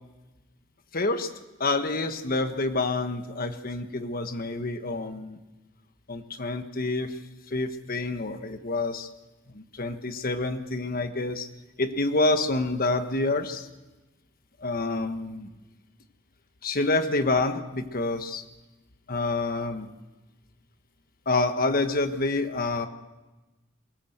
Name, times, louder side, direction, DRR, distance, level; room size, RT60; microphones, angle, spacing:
voice 1, 0.9-1.3 1.6-5.4 6.1-7.1 7.5-9.1 9.5-11.5 11.8-13.7 14.6-15.5 16.6-18.4 19.1-19.9 21.3-22.9, left 2 dB, 45° left, 8 dB, 1.4 m, -27 dB
22.0 x 17.5 x 8.0 m, 1.1 s
head